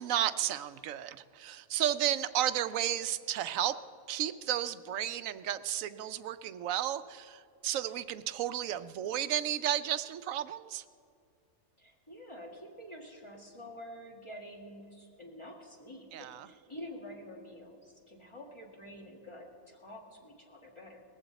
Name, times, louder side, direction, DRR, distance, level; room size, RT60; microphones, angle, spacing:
voice 1, 0.0-3.8 4.1-10.8 16.1-16.5, right 11 dB, 80° right, 13 dB, 1.0 m, -33 dB
voice 2, 11.8-21.0, equal, 20° left, 0 dB, 2.1 m, -48 dB
19.5 x 14.5 x 4.1 m, 2.4 s
omnidirectional pair, 1.4 m